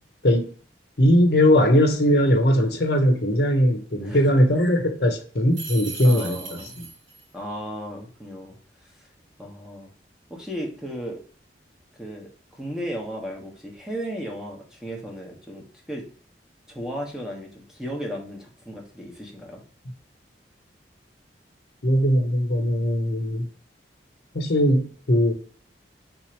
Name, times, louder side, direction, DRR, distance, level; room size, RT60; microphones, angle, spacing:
voice 1, 1.0-6.9 21.8-23.5 24.3-25.3, equal, 60° left, 0.8 m, -20 dB
voice 2, 4.0-4.3 6.0-6.9 7.3-8.6 8.8-9.1 9.4-9.9 10.3-11.2 12.0-16.0 16.7-19.6, equal, 5° right, 1.1 m, -35 dB
sound 1, 5.5-7.2, right 5 dB, 75° right, 2.4 m, -37 dB
3.8 x 2.9 x 4.4 m
head